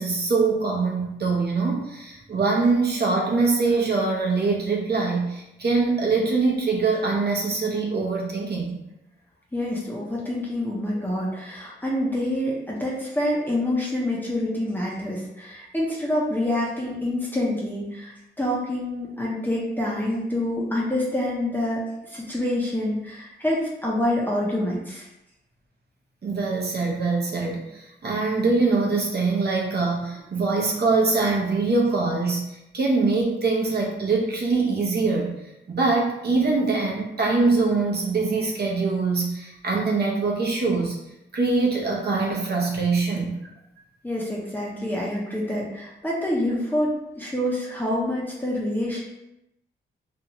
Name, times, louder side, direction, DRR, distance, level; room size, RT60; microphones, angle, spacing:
voice 1, 0.0-8.8 26.2-35.3 35.7-41.0 41.3-43.3, right 3 dB, 55° right, -2 dB, 0.8 m, -23 dB
voice 2, 9.5-25.1 44.0-49.0, left 1 dB, 10° left, -5 dB, 0.6 m, -27 dB
2.7 x 2.3 x 2.9 m, 0.88 s
cardioid pair, 80°, 20 cm